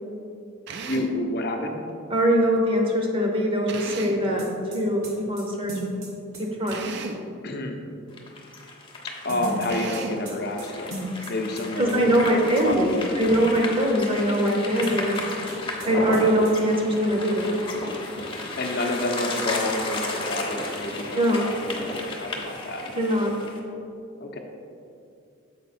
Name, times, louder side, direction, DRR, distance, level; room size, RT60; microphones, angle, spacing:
Drill, 0.7-1.2 3.7-4.3 6.7-7.3 9.7-10.3, right 4 dB, 55° right, 0.4 m, -35 dB
voice 1, 0.9-1.8 7.4-7.8 9.2-11.0 11.3-13.4 18.6-22.8 24.2-24.4, left 1 dB, 50° left, 3 dB, 0.7 m, -29 dB
voice 2, 2.1-4.4 4.7-6.0 6.4-6.9 11.8-15.1 15.9-17.5 21.1-21.4 22.9-23.4, equal, 25° right, 0 dB, 0.8 m, -22 dB
sound 1, 4.4-6.8 9.3-11.6 11.9-12.0 14.8-15.5 15.8-15.9 16.1-16.5, equal, 80° right, 1.3 m, -36 dB
sound 2, 8.1-23.6, left 2 dB, 25° left, 0.8 m, -33 dB
7.2 x 4.7 x 4.2 m, 2.5 s
head